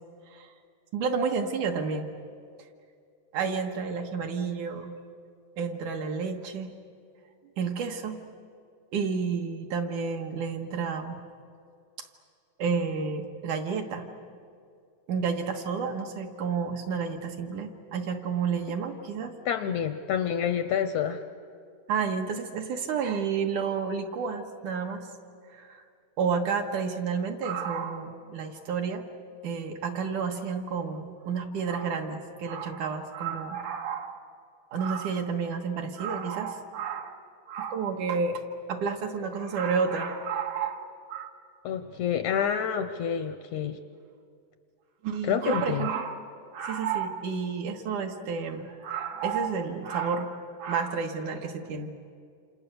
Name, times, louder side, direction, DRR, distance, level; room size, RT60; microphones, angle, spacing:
voice 1, 0.9-2.1 3.3-4.9 5.6-6.7 7.6-8.2 8.9-11.2 12.6-14.1 15.1-19.3 21.9-25.1 25.5-25.8 26.2-29.1 29.4-34.2 34.7-37.2 37.5-38.4 38.7-41.3 45.0-46.2 46.5-51.9, right 5 dB, 70° right, 3 dB, 2.7 m, -30 dB
voice 2, 19.5-21.2 41.6-43.8 45.2-45.9, left 8 dB, 75° left, 9 dB, 1.8 m, -28 dB
27.5 x 27.5 x 6.9 m, 2.3 s
omnidirectional pair, 3.9 m